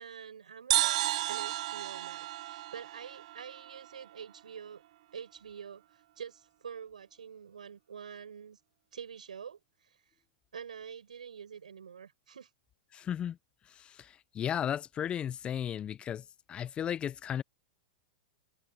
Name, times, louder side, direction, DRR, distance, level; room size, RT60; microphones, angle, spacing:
voice 1, 0.0-4.8 5.1-8.6 8.9-10.0 10.5-12.5, right 7 dB, 85° right, 7.9 m, -46 dB
sound 1, 0.7-4.2, right 15 dB, 60° right, 0.8 m, -33 dB
voice 2, 12.9-13.4 13.7-17.4, left 9 dB, 25° left, 0.6 m, -35 dB
hypercardioid pair, 105°, 4 cm